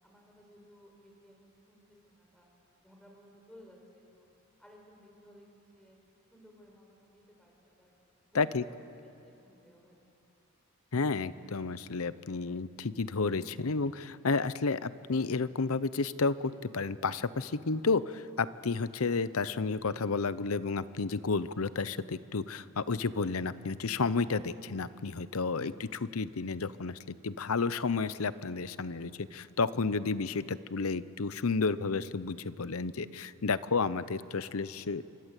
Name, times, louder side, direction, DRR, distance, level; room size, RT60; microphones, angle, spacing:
voice 1, 0.0-2.5 2.8-4.3 4.6-6.0 6.3-7.9 8.3-8.7 9.0-10.0, equal, 5° left, 0 dB, 5.7 m, -58 dB
voice 2, 10.9-35.0, left 4 dB, 75° left, 15 dB, 0.8 m, -31 dB
28.0 x 23.0 x 8.3 m, 2.7 s
head